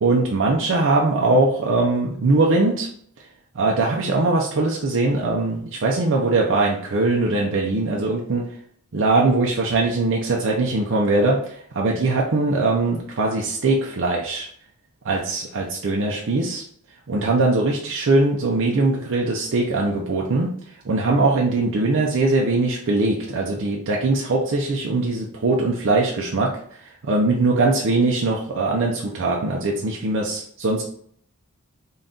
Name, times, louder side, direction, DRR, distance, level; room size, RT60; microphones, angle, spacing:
voice 1, 0.0-2.9 3.5-8.5 8.9-14.5 15.0-16.6 17.1-20.5 20.8-30.8, right 2 dB, 55° right, -1 dB, 0.5 m, -21 dB
3.9 x 2.3 x 3.7 m, 0.62 s
head